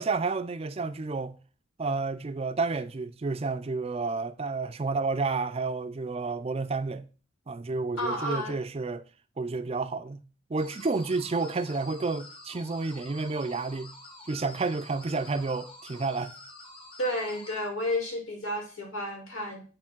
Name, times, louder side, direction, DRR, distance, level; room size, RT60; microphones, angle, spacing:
voice 1, 0.0-1.4 1.8-7.1 7.5-9.0 9.4-10.2 10.5-13.9 14.3-16.3, right 3 dB, 30° right, 0.4 m, -30 dB
voice 2, 8.0-8.6 17.0-19.6, left 1 dB, 90° left, 2.5 m, -31 dB
sound 1, 10.6-17.5, left 2 dB, 30° left, 1.7 m, -48 dB
8.5 x 3.2 x 5.9 m
head